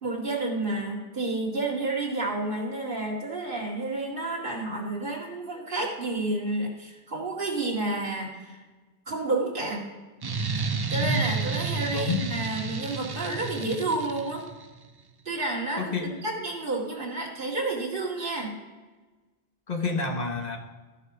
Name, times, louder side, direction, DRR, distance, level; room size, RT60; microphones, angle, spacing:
voice 1, 0.0-8.6 9.1-9.8 10.9-14.4 15.3-18.5, right 2 dB, 60° right, -3 dB, 2.4 m, -30 dB
sound 1, 10.2-14.7, right 5 dB, 35° right, 0.4 m, -31 dB
voice 2, 11.8-12.3 15.8-16.1 19.7-20.6, left 3 dB, 45° left, 4 dB, 1.2 m, -29 dB
14.0 x 5.6 x 4.8 m, 1.3 s
omnidirectional pair, 1.0 m